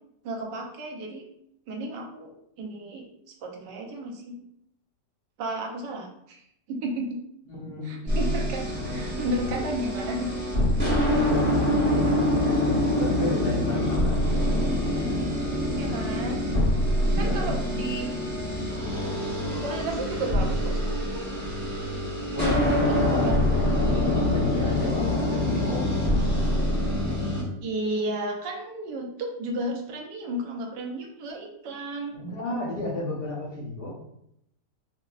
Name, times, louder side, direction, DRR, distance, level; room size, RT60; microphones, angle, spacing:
voice 1, 0.2-1.3 1.7-3.1 3.4-4.4 5.4-6.4 6.7-7.2 7.8-10.3 11.8-12.1 15.8-16.4 17.2-18.1 19.5-21.3 22.8-23.3 27.6-32.2, right 1 dB, 85° right, 0 dB, 1.3 m, -33 dB
voice 2, 7.5-9.0 9.4-9.9 11.1-14.7 17.0-17.6 22.3-23.5 23.8-26.0 32.1-33.9, left 1 dB, 45° left, -5 dB, 0.8 m, -33 dB
sound 1, 8.1-27.4, left 1 dB, 10° left, 0.7 m, -25 dB
5.1 x 2.0 x 2.3 m, 0.75 s
omnidirectional pair, 1.8 m